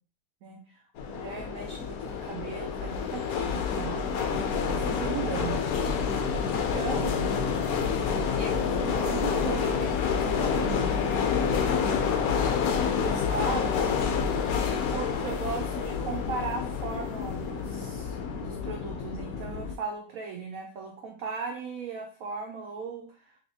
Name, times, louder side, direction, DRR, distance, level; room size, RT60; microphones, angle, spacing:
voice 1, 0.4-5.8 6.5-7.4 8.3-11.0 12.2-14.0 14.9-23.4, right 5 dB, 80° right, 2 dB, 0.7 m, -38 dB
sound 1, 1.0-19.7, left 6 dB, 75° left, 0.8 m, -28 dB
3.8 x 2.9 x 2.7 m, 0.42 s
omnidirectional pair, 2.0 m